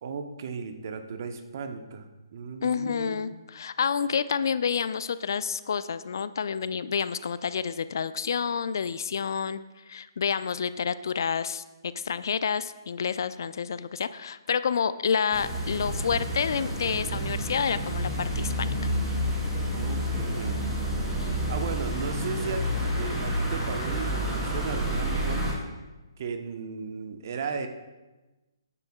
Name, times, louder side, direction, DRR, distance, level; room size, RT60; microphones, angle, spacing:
voice 1, 0.0-3.4 19.7-25.4 26.2-27.7, right 5 dB, 45° right, 6 dB, 1.0 m, -36 dB
voice 2, 2.6-9.6 9.9-18.7, left 6 dB, 55° left, 15 dB, 0.4 m, -29 dB
sound 1, 15.3-25.5, equal, 10° right, 3.0 m, -29 dB
15.0 x 9.8 x 2.4 m, 1.1 s
figure-of-eight pair, 135°, 2 cm